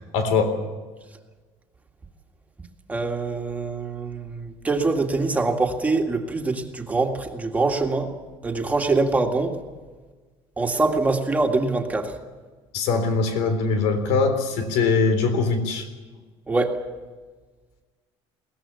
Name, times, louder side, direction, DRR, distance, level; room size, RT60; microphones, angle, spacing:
voice 1, 0.1-0.5 12.7-15.9, left 4 dB, 85° left, 8 dB, 3.7 m, -22 dB
voice 2, 2.9-8.1 8.4-9.6 10.6-12.2 16.5-16.8, right 3 dB, 15° right, 3 dB, 2.0 m, -24 dB
22.0 x 19.0 x 7.1 m, 1.4 s
cardioid pair, 150°, 11 cm